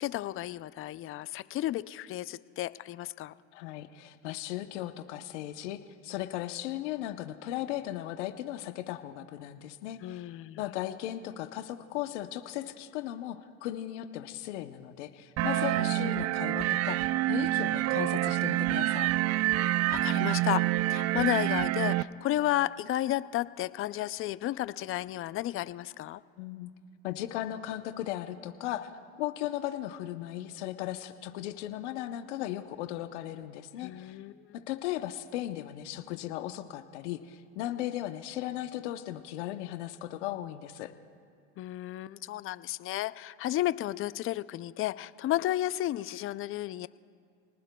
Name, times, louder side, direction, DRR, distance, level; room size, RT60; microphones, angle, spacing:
voice 1, 0.0-3.3 10.0-10.6 15.8-16.3 19.9-26.2 33.8-34.6 41.6-46.9, left 14 dB, 40° left, 16 dB, 0.5 m, -33 dB
voice 2, 3.5-10.3 10.6-19.1 26.4-26.7 27.0-28.9 29.2-34.2 34.5-40.9, left 13 dB, 80° left, 9 dB, 0.9 m, -37 dB
sound 1, 15.4-22.0, right 16 dB, 45° right, 0.5 m, -27 dB
29.0 x 19.0 x 2.3 m, 2.3 s
supercardioid pair, 95°, 35 cm